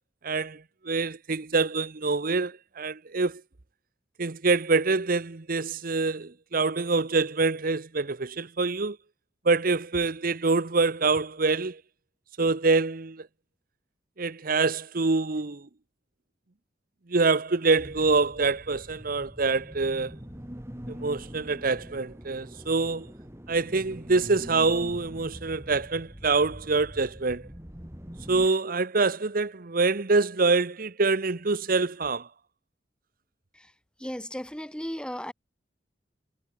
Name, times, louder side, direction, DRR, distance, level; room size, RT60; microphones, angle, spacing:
voice 1, 0.2-3.4 4.2-9.0 9.4-11.8 12.4-13.3 14.2-15.7 17.1-20.2 20.9-23.1 23.5-27.5 28.3-32.3, right 3 dB, 50° right, 1.0 m, -25 dB
sound 1, 17.8-28.5, equal, 15° right, 2.3 m, -44 dB
voice 2, 34.0-35.3, equal, 5° left, 2.0 m, -35 dB
head